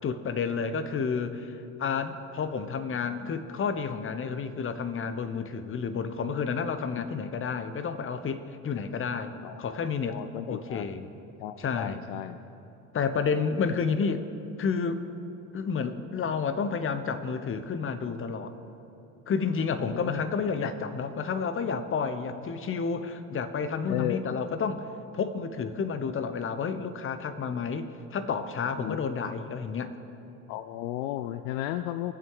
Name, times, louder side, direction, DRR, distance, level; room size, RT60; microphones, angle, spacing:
voice 1, 0.0-10.2 10.5-11.1 11.6-12.0 12.9-14.3 14.6-15.0 15.5-18.5 19.3-24.9 25.1-29.9, left 5 dB, 30° left, 11 dB, 1.0 m, -30 dB
voice 2, 10.1-10.9 11.4-12.4 19.8-20.2 20.6-20.7 23.9-24.4 28.8-29.0 29.2-29.4 30.5-32.1, left 13 dB, 65° left, 11 dB, 0.6 m, -34 dB
23.0 x 7.7 x 4.8 m, 2.9 s
hypercardioid pair, 65°, 42 cm